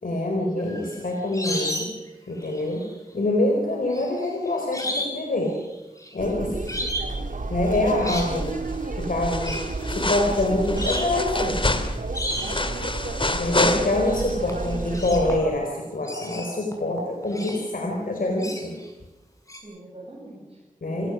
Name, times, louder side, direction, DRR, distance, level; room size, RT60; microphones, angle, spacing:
voice 1, 0.0-1.9 2.3-2.8 3.1-5.6 6.1-6.7 7.5-8.6 9.0-9.6 9.9-11.8 13.2-18.8 20.8-21.1, left 1 dB, 80° left, 1 dB, 4.4 m, -25 dB
sound 1, 0.6-2.1 2.4-2.9 3.9-5.2 5.5-6.1 6.7-7.1 7.7-8.3 9.4-9.7 10.3-10.4 10.8-11.2 12.1-12.7 14.1-14.2 14.5-15.6 16.0-17.7 18.4-18.9 19.5-19.6, equal, 20° left, 7.2 m, -32 dB
sound 2, 6.2-15.4, right 2 dB, 70° right, 2.6 m, -31 dB
sound 3, 8.2-8.7 9.0-14.3 14.6-14.7, left 2 dB, 35° left, 2.3 m, -28 dB
voice 2, 12.4-12.7 17.0-17.3 19.6-20.6 20.9-21.1, right 1 dB, 45° right, -3 dB, 7.9 m, -44 dB
29.5 x 18.0 x 6.4 m, 1.0 s
wide cardioid pair, 75°, 14 cm